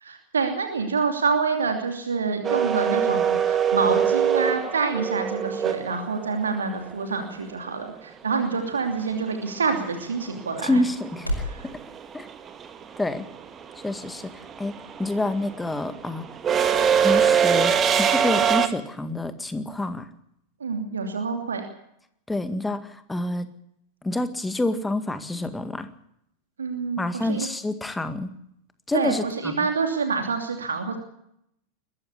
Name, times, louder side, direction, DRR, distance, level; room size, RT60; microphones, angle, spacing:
voice 1, 0.0-10.8 11.4-11.7 20.6-21.6 26.6-27.5 28.9-31.0, right 4 dB, 70° right, 5 dB, 2.8 m, -27 dB
sound 1, 2.4-6.5 8.9-9.0 10.3-10.6 10.9-18.7, right 8 dB, 25° right, 1.9 m, -22 dB
sound 2, 5.3-11.6, equal, 90° left, 5.3 m, -39 dB
voice 2, 10.6-11.4 12.1-12.3 13.0-13.3 13.8-14.3 14.6-14.7 15.0-16.2 17.0-20.1 22.3-23.5 24.0-25.9 27.0-28.3 28.9-29.5, left 2 dB, 10° left, 11 dB, 1.9 m, -27 dB
22.0 x 14.5 x 8.5 m, 0.76 s
figure-of-eight pair, 90°, 0 cm